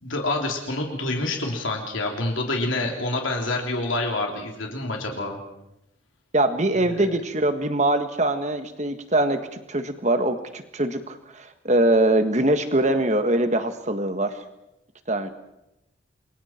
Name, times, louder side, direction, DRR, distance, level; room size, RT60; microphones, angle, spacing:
voice 1, 0.0-5.4, left 2 dB, 75° left, 1 dB, 3.2 m, -27 dB
voice 2, 6.3-14.4 15.1-15.3, right 1 dB, 35° right, 8 dB, 1.6 m, -23 dB
28.0 x 23.0 x 4.5 m, 0.88 s
head